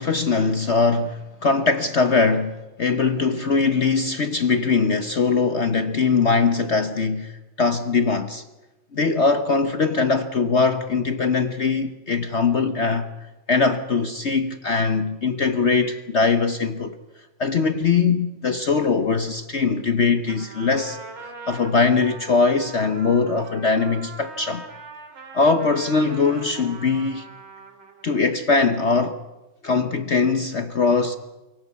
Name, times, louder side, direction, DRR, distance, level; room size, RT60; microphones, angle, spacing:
voice 1, 0.0-8.4 8.9-13.1 13.5-17.0 17.4-21.0 21.5-24.6 25.3-27.3 28.0-29.2 29.6-31.2, left 4 dB, 50° left, 0.8 m, -21 dB
Trumpet, 20.3-28.1, right 4 dB, 85° right, 3.5 m, -41 dB
27.5 x 18.0 x 8.3 m
omnidirectional pair, 2.2 m